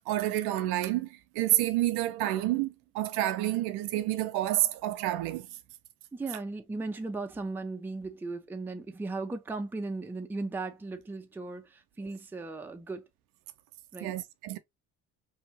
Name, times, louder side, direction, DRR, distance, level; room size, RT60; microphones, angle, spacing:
voice 1, 0.1-1.1 1.3-5.5 14.0-14.6, right 14 dB, 60° right, 0.5 m, -29 dB
voice 2, 6.1-13.0 13.9-14.1, right 3 dB, 5° right, 0.5 m, -37 dB
2.7 x 2.6 x 2.6 m
hypercardioid pair, 55°, 44 cm